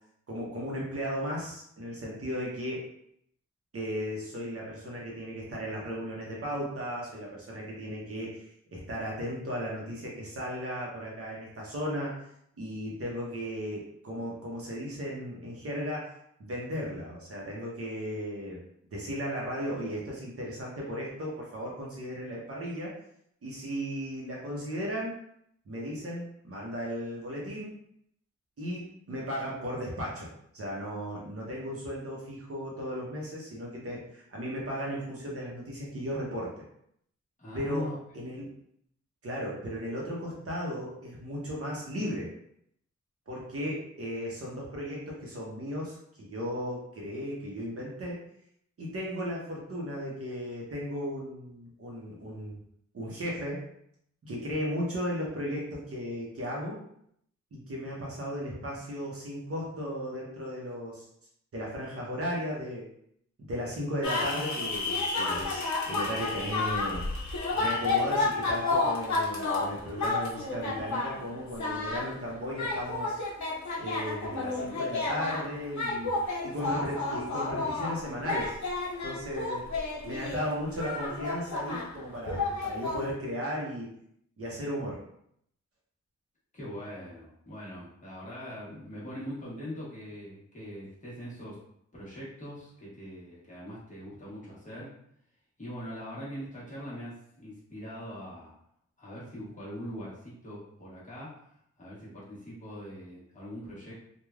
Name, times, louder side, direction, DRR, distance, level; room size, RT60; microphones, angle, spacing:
voice 1, 0.3-2.8 3.7-12.2 12.6-16.1 16.4-18.6 18.9-22.9 23.4-25.1 25.7-27.7 28.6-36.6 37.5-37.9 38.1-38.5 39.2-42.3 43.3-48.2 48.8-52.6 52.9-53.7 54.2-56.8 57.5-61.1 61.5-62.9 63.5-67.0 67.6-73.2 73.8-76.1 76.4-78.6 79.0-79.6 80.0-83.9 84.4-85.0, equal, 50° right, -4 dB, 0.7 m, -35 dB
voice 2, 37.4-38.0 86.5-91.5 91.9-94.9 95.6-98.5 99.0-101.4 101.8-103.9, equal, 25° left, -8 dB, 0.9 m, -42 dB
sound 1, 64.0-71.2 71.5-72.1 72.5-82.0 82.3-83.1, left 3 dB, 70° left, 0.6 m, -31 dB
3.1 x 2.2 x 2.3 m, 0.72 s
wide cardioid pair, 175°, 29 cm